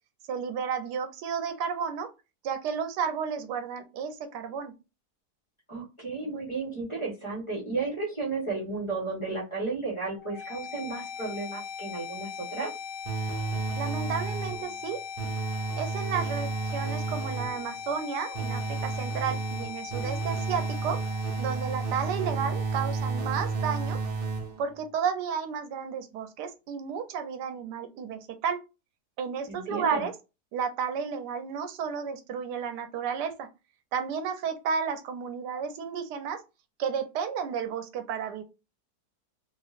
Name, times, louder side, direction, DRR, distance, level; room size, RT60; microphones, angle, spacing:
voice 1, 0.3-2.1 2.4-4.7 13.8-15.0 15.8-21.0 21.4-24.0 24.6-28.6 29.2-30.1 30.5-33.5 33.9-36.4 36.8-38.4, right 6 dB, 90° right, 8 dB, 1.2 m, -32 dB
voice 2, 5.7-12.7 29.5-30.0, right 3 dB, 20° left, -3 dB, 1.1 m, -33 dB
sound 1, 10.2-24.1, left 7 dB, 65° left, 0.8 m, -40 dB
sound 2, 13.1-14.7 15.2-17.7 18.3-24.7, right 4 dB, 65° right, 0.5 m, -32 dB
3.0 x 2.8 x 2.4 m, 0.27 s
omnidirectional pair, 1.8 m